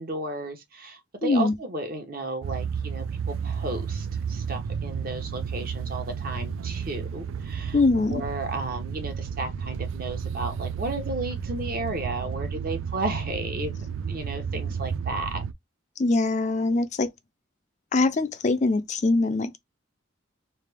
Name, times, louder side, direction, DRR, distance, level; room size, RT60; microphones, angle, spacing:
voice 1, 0.0-7.8 8.1-13.8 14.1-15.4, right 2 dB, 45° right, 1.0 m, -33 dB
voice 2, 1.2-1.5 7.7-8.2 16.0-17.1 17.9-19.6, left 3 dB, 35° left, 0.4 m, -23 dB
sound 1, 2.4-15.5, right 6 dB, 75° right, 0.3 m, -32 dB
3.3 x 3.3 x 3.4 m
head